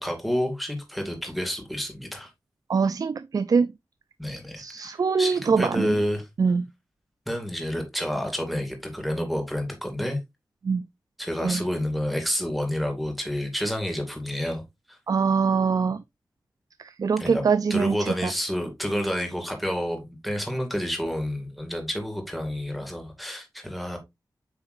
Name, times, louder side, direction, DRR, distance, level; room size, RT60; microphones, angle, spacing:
voice 1, 0.0-2.3 4.2-6.3 7.3-10.2 11.2-14.6 14.9-15.0 17.2-17.4 17.7-24.0, equal, ahead, 2.3 m, -29 dB
voice 2, 2.7-3.7 4.6-5.9 6.4-6.7 10.6-10.9 11.4-11.6 15.1-16.0 16.8-18.3, right 5 dB, 55° right, 0.4 m, -23 dB
8.3 x 5.7 x 2.6 m
wide cardioid pair, 105°, 7 cm